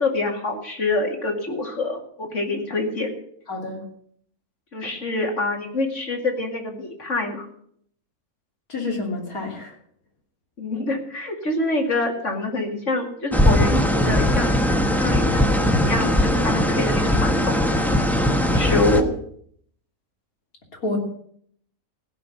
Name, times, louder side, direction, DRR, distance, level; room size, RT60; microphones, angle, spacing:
voice 1, 0.0-3.1 4.7-7.5 10.6-14.5 15.0-17.7 18.5-19.1, left 2 dB, 55° left, 2 dB, 2.8 m, -26 dB
voice 2, 3.5-3.9 8.7-9.8 20.8-21.0, left 2 dB, 75° left, 1 dB, 3.6 m, -28 dB
sound 1, 13.3-19.0, left 1 dB, ahead, 1.0 m, -19 dB
16.0 x 6.1 x 9.7 m, 0.65 s
omnidirectional pair, 1.5 m